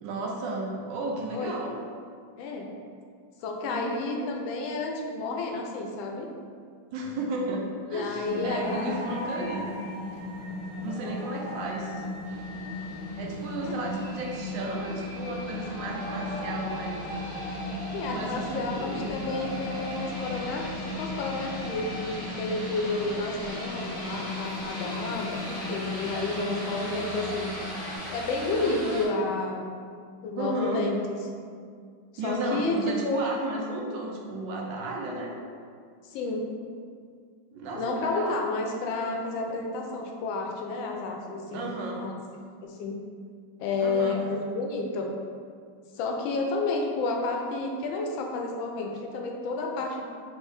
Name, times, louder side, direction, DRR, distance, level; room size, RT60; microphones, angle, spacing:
voice 1, 0.0-1.8 3.7-4.3 6.9-9.7 10.8-12.1 13.2-17.1 18.1-19.1 28.6-29.2 30.4-30.9 32.2-35.4 37.5-38.4 41.5-42.0 43.8-44.2, right 2 dB, 75° right, 0 dB, 1.2 m, -33 dB
voice 2, 2.4-2.7 3.4-6.3 7.9-8.8 13.6-13.9 17.9-27.8 28.1-29.7 30.2-31.2 32.2-32.8 33.0-33.2 36.0-36.4 37.7-42.1 42.6-43.0 43.6-45.1 45.9-50.1, left 3 dB, 85° left, 1 dB, 1.4 m, -31 dB
sound 1, 8.2-28.0, left 1 dB, 45° left, 1.4 m, -36 dB
sound 2, 12.2-29.1, left 1 dB, 25° right, 1.3 m, -40 dB
4.4 x 3.2 x 3.3 m, 2.1 s
omnidirectional pair, 2.1 m